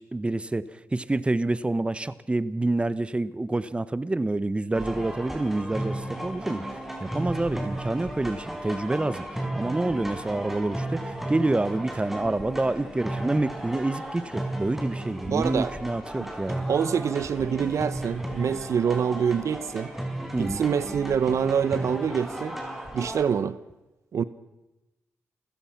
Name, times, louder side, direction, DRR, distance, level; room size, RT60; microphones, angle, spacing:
voice 1, 0.0-16.6 20.3-20.6, right 2 dB, 20° right, 16 dB, 1.0 m, -28 dB
sound 1, 4.7-23.2, right 1 dB, 5° right, 4.9 m, -34 dB
voice 2, 15.3-15.7 16.2-16.3 16.7-19.9 20.4-22.6 22.9-23.6 24.1-24.2, right 7 dB, 70° right, 16 dB, 0.8 m, -25 dB
29.5 x 16.0 x 5.9 m, 1.0 s
cardioid pair, 60°, 5 cm